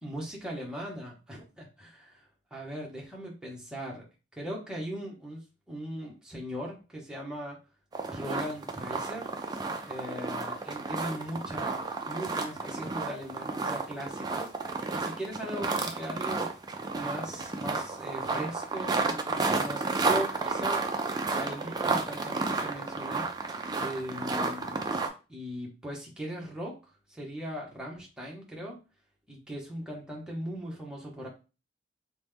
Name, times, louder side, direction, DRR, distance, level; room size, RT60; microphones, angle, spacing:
voice 1, 0.0-2.2 2.5-4.0 4.3-5.4 5.7-7.6 8.1-9.3 9.8-16.5 16.9-20.8 21.4-23.3 23.8-24.8 25.3-26.8 27.1-28.8 29.3-31.3, equal, 5° right, -3 dB, 0.9 m, -39 dB
sound 1, 7.9-25.1, right 3 dB, 20° right, 0.3 m, -31 dB
3.1 x 2.1 x 3.4 m, 0.31 s
head